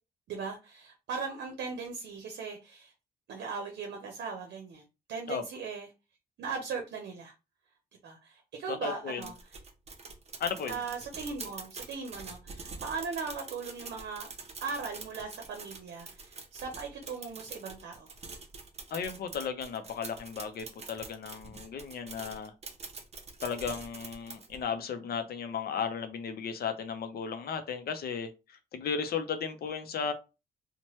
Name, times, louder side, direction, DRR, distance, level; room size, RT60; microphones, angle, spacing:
voice 1, 0.3-2.9 3.3-4.8 5.1-5.9 6.4-7.3 8.0-9.3 10.6-14.3 14.6-18.1, right 5 dB, 80° right, 0.6 m, -38 dB
voice 2, 8.8-9.2 10.4-10.8 18.9-22.5 23.4-28.3 28.7-30.1, left 6 dB, 65° left, 0.5 m, -35 dB
sound 1, 9.2-24.6, right 4 dB, 40° right, 0.6 m, -45 dB
2.9 x 2.1 x 3.0 m
cardioid pair, 85°, 17 cm